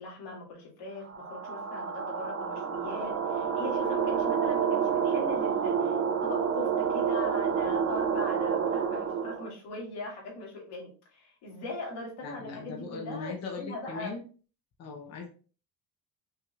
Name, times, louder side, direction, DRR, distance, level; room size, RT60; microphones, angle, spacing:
voice 1, 0.0-6.0 6.2-14.1, left 2 dB, 80° left, -3 dB, 2.3 m, -40 dB
sound 1, 1.1-9.5, right 7 dB, 35° right, 0.6 m, -29 dB
voice 2, 12.2-14.2 14.8-15.2, left 4 dB, 40° left, 0 dB, 0.8 m, -39 dB
5.7 x 3.5 x 2.4 m, 0.37 s
cardioid pair, 180°, 40 cm